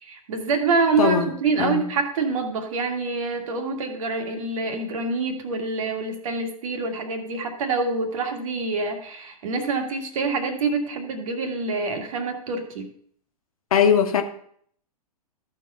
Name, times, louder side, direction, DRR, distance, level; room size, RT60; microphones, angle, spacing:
voice 1, 0.0-12.9, right 4 dB, 55° right, 4 dB, 1.9 m, -26 dB
voice 2, 1.0-1.3 1.6-1.8 13.7-14.2, left 7 dB, 65° left, 5 dB, 1.4 m, -20 dB
13.5 x 4.6 x 5.4 m, 0.62 s
figure-of-eight pair, 110°, 20 cm